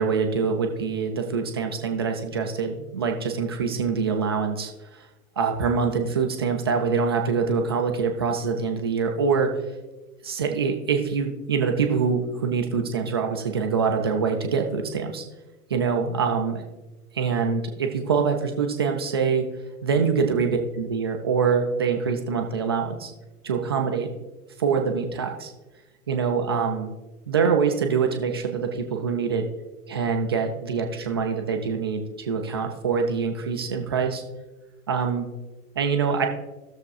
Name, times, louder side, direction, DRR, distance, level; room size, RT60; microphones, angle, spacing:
voice 1, 0.0-5.1 5.4-9.5 10.2-15.2 15.7-16.6 17.1-19.4 19.8-23.1 23.4-24.1 24.6-25.5 26.1-26.9 27.3-29.4 29.9-34.2 34.9-35.3 35.8-36.3, right 5 dB, 20° right, 2 dB, 0.3 m, -24 dB
15.5 x 6.7 x 2.3 m, 1.1 s
figure-of-eight pair, 110°, 46 cm